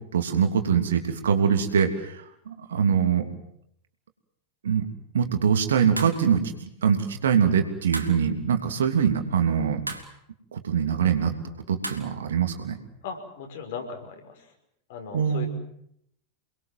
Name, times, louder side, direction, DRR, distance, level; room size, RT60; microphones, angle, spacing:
voice 1, 0.1-3.3 4.6-4.9 5.1-6.4 6.8-9.8 10.5-11.3 11.7-12.8 15.1-15.5, right 7 dB, 65° right, 6 dB, 3.1 m, -23 dB
sound 1, 6.0-6.3 7.9-8.2 9.9-10.2 11.8-12.1, right 2 dB, 85° right, 2.7 m, -35 dB
voice 2, 13.0-14.5 14.9-15.5, left 6 dB, 55° left, 4 dB, 5.7 m, -37 dB
29.0 x 21.5 x 7.7 m, 0.73 s
figure-of-eight pair, 90°, 0 cm